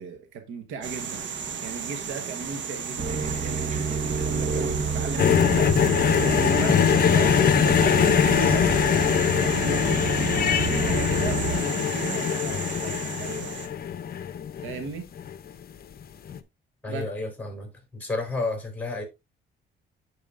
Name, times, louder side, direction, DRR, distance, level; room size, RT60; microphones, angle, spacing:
voice 1, 0.0-5.8 6.2-13.6 14.6-15.1 16.9-17.1, right 5 dB, 90° right, 1.3 m, -37 dB
sound 1, 0.8-13.7, right 6 dB, 70° right, 1.2 m, -34 dB
sound 2, 3.0-11.6, right 5 dB, 40° right, 1.2 m, -30 dB
sound 3, 5.2-15.4 16.3-16.4, left 8 dB, 50° left, 0.7 m, -22 dB
voice 2, 16.8-19.0, left 3 dB, 10° left, 4.0 m, -31 dB
10.5 x 4.8 x 2.5 m
cardioid pair, 90°, 20 cm